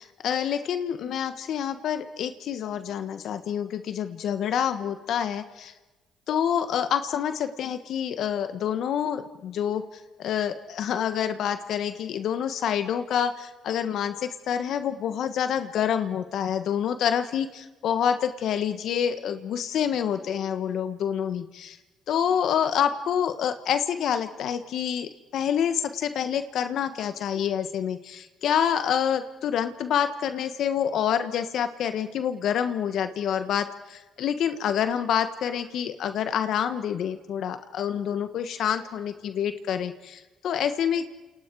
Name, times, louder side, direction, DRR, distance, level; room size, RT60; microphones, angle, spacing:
voice 1, 0.0-5.7 6.3-9.8 10.2-21.8 22.1-41.1, left 8 dB, 70° left, 10 dB, 1.5 m, -27 dB
29.0 x 28.0 x 4.8 m, 1.1 s
supercardioid pair, 75°, 0 cm